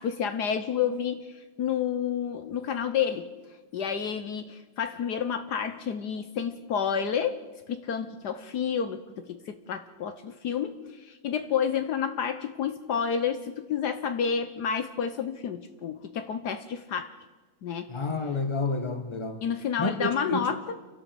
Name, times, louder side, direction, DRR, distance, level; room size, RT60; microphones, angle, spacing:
voice 1, 0.0-3.3 3.7-7.4 7.7-17.1 17.6-18.0 19.4-20.8, left 7 dB, 65° left, 9 dB, 1.4 m, -30 dB
voice 2, 17.9-19.4 19.8-20.5, left 3 dB, 15° left, 7 dB, 1.6 m, -30 dB
30.0 x 11.5 x 7.8 m, 1.3 s
omnidirectional pair, 2.0 m